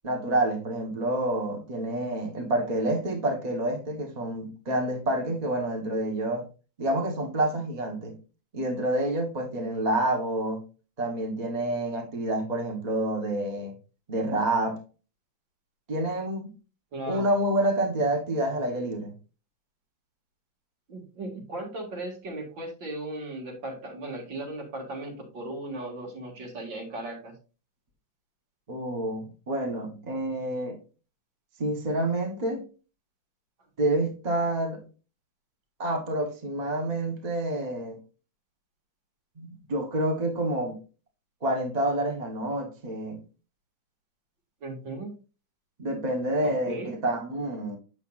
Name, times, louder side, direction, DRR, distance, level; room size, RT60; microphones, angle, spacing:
voice 1, 0.0-6.4 6.8-8.1 8.5-10.6 11.0-13.7 14.1-14.8 15.9-16.5 17.1-19.1 28.7-30.8 31.6-32.6 33.8-34.8 35.8-38.0 39.4-40.8 41.4-43.2 45.8-47.8, right 1 dB, 25° right, 1.3 m, -28 dB
voice 2, 16.9-17.3 20.9-27.3 44.6-45.1 46.4-46.9, right 2 dB, 80° right, 2.9 m, -37 dB
7.9 x 6.7 x 2.5 m
omnidirectional pair, 2.0 m